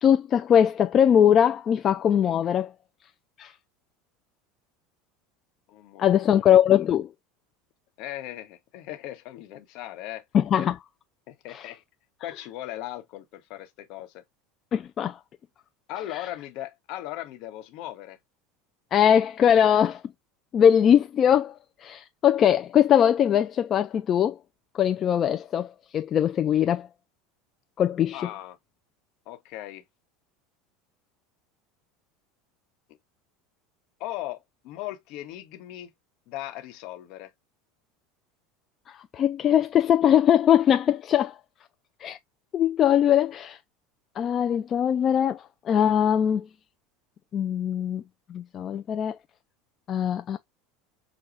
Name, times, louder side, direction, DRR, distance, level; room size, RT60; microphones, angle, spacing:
voice 1, 0.0-2.7 3.4-3.5 6.0-7.1 10.3-10.8 11.5-11.7 14.7-15.2 16.1-16.3 18.9-20.0 20.5-21.5 21.8-24.4 24.7-26.9 27.8-28.3 38.9-41.4 42.0-42.2 42.5-43.6 44.2-46.5 47.3-48.0 48.3-49.2 49.9-50.4, left 9 dB, 35° left, 0.3 m, -21 dB
voice 2, 5.7-6.3 8.0-10.2 11.3-11.8 12.2-14.2 15.9-18.2 28.1-28.6 29.3-29.8 34.0-35.9 36.3-37.3, left 14 dB, 60° left, 1.1 m, -38 dB
6.1 x 2.3 x 2.5 m
supercardioid pair, 130°, 0 cm